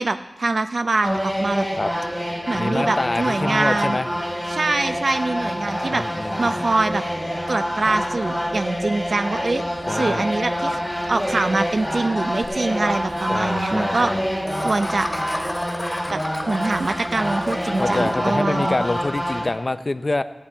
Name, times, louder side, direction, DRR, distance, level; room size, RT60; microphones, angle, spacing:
voice 1, 0.0-1.7 2.5-4.0 4.5-7.0 7.5-9.6 9.9-14.1 14.6-15.1 16.1-18.8, right 3 dB, 65° right, 9 dB, 0.6 m, -24 dB
sound 1, 1.0-19.5, equal, 15° right, 2.6 m, -26 dB
voice 2, 2.5-4.1 5.9-6.6 9.9-10.2 13.3-14.3 17.8-20.2, left 2 dB, 45° left, 12 dB, 0.5 m, -26 dB
Laughter, 12.4-12.5 12.8-12.9 13.1-13.3 14.5-18.1, left 1 dB, 15° left, 2.0 m, -34 dB
17.0 x 8.6 x 4.5 m, 1.2 s
wide cardioid pair, 65°, 0 cm